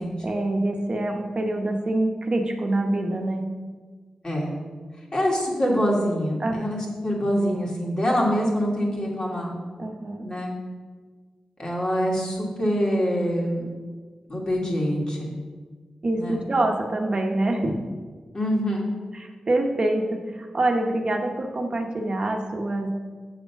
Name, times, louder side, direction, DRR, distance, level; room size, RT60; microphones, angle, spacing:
voice 1, 0.2-3.5 6.4-6.6 9.8-10.2 16.0-17.8 19.1-22.9, right 2 dB, 45° right, 3 dB, 1.0 m, -25 dB
voice 2, 4.2-4.6 5.1-9.5 10.2-10.5 11.6-13.6 14.3-15.4 16.2-16.4 18.3-18.9, equal, 40° left, -2 dB, 2.4 m, -25 dB
7.1 x 6.6 x 5.8 m, 1.5 s
cardioid pair, 75°, 2 cm